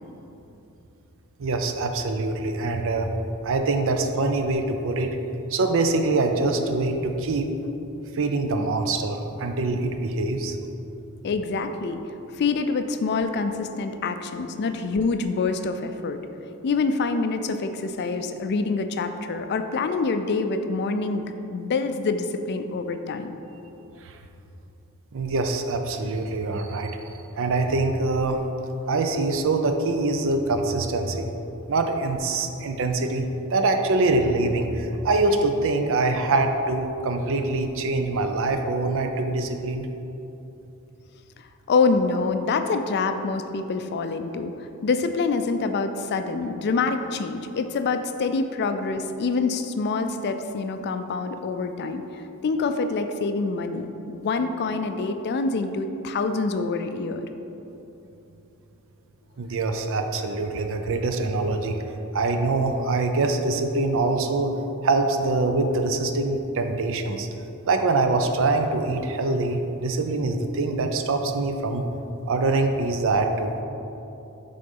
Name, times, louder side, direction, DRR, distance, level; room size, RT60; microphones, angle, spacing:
voice 1, 1.4-3.1 3.4-5.2 5.5-7.5 8.1-10.6 24.0-24.1 25.1-27.0 27.4-28.4 28.9-31.3 31.7-33.3 33.5-39.9 59.4-61.8 62.1-64.5 64.8-67.3 67.7-71.9 72.3-73.6, right 3 dB, 60° right, 6 dB, 0.5 m, -24 dB
voice 2, 11.2-12.0 12.3-16.2 16.6-23.3 41.7-57.3, left 4 dB, 50° left, 8 dB, 0.4 m, -26 dB
6.7 x 3.8 x 5.4 m, 2.9 s
head